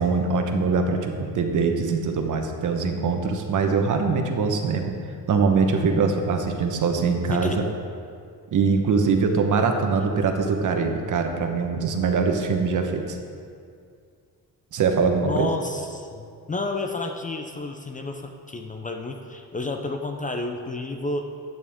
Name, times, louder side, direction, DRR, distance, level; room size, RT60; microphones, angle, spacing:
voice 1, 0.0-4.9 5.3-7.6 8.5-13.2 14.7-15.5, right 5 dB, 50° right, 4 dB, 1.1 m, -23 dB
voice 2, 15.2-21.3, left 2 dB, 20° left, 4 dB, 0.5 m, -31 dB
11.5 x 9.0 x 3.6 m, 2.3 s
cardioid pair, 120°, 38 cm